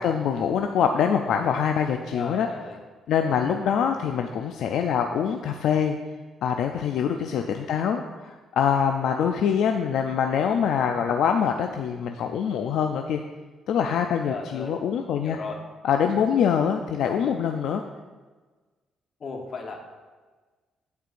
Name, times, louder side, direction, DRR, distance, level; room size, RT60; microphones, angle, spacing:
voice 1, 0.0-2.5 3.1-6.0 6.4-13.2 13.7-15.4 15.8-17.8, left 7 dB, 75° left, 5 dB, 0.3 m, -24 dB
voice 2, 2.1-2.8 3.2-3.4 7.0-7.2 14.3-14.7 15.2-15.6 19.2-19.8, left 4 dB, 50° left, 2 dB, 1.1 m, -36 dB
11.5 x 4.6 x 2.5 m, 1.3 s
cardioid pair, 90°, 0 cm